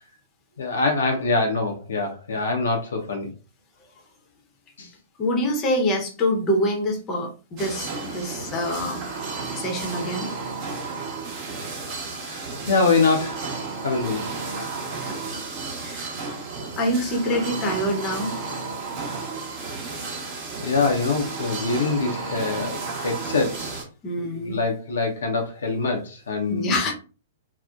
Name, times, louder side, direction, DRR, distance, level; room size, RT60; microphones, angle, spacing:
voice 1, 0.6-3.3 4.8-4.9 12.2-13.4 13.8-14.3 14.6-14.7 20.3-23.8 24.2-26.8, left 3 dB, 65° left, 0.5 m, -24 dB
voice 2, 5.2-9.0 9.5-10.3 15.0-15.1 15.8-16.2 16.8-18.3 24.0-24.6 26.5-26.9, equal, 25° left, 0.7 m, -25 dB
sound 1, 7.6-23.8, right 4 dB, 35° right, 0.8 m, -33 dB
2.6 x 2.0 x 2.2 m
figure-of-eight pair, 110°, 0 cm